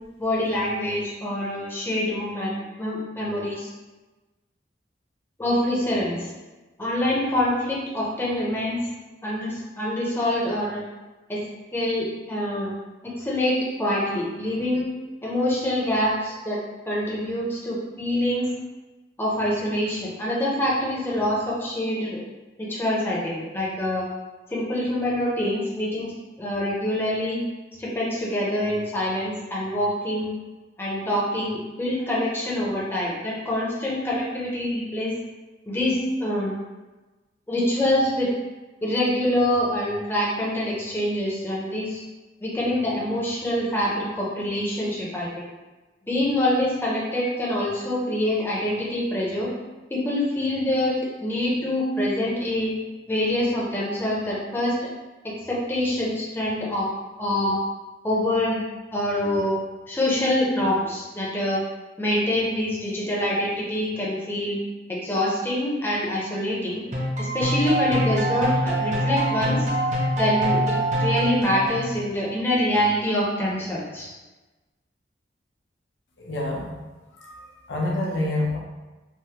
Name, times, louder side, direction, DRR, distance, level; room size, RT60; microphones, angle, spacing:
voice 1, 0.2-3.7 5.4-6.3 6.8-8.9 9.2-10.8 11.3-11.5 11.7-12.7 13.2-14.9 15.2-18.5 19.2-22.2 22.6-24.1 24.5-26.1 26.4-27.4 27.8-30.3 30.8-35.1 35.7-36.6 37.5-38.3 38.8-42.0 42.4-45.5 46.1-49.5 49.9-50.9 51.2-52.7 53.1-54.9 55.2-56.9 57.2-57.6 58.0-58.6 58.9-59.6 59.9-61.6 62.0-64.6 64.9-66.8 67.2-69.7 70.1-74.1, left 1 dB, 10° left, -6 dB, 0.5 m, -25 dB
sound 1, 66.9-72.1, right 1 dB, 40° right, 0.6 m, -24 dB
voice 2, 76.2-76.7 77.2-78.6, left 1 dB, 90° left, -2 dB, 0.6 m, -27 dB
3.3 x 2.1 x 2.8 m, 1.2 s
head